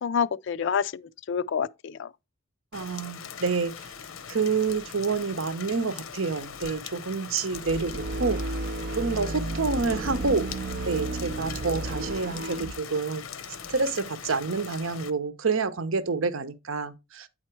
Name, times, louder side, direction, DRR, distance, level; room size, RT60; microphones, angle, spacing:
voice 1, 0.0-2.1, left 7 dB, 60° left, 0.3 m, -28 dB
Rain, 2.7-15.1, left 7 dB, 80° left, 0.7 m, -41 dB
voice 2, 2.7-3.7 4.3-8.4 8.9-10.5 10.8-13.2 13.7-17.3, right 4 dB, 75° right, 0.8 m, -28 dB
sound 1, 7.5-12.8, right 2 dB, 50° right, 0.4 m, -33 dB
8.8 x 4.3 x 4.5 m
head